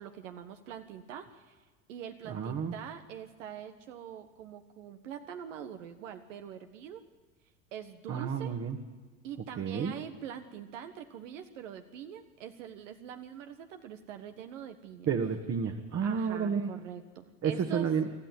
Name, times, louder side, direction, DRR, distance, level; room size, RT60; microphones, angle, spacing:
voice 1, 0.0-1.6 1.9-7.0 7.7-8.6 9.2-15.1 16.0-17.9, right 9 dB, 70° right, 7 dB, 1.6 m, -44 dB
voice 2, 2.3-2.7 8.1-8.8 9.6-9.9 15.1-16.7 17.4-18.2, right 6 dB, 35° right, 4 dB, 2.0 m, -31 dB
25.0 x 13.5 x 9.5 m, 1.4 s
hypercardioid pair, 85°, 40 cm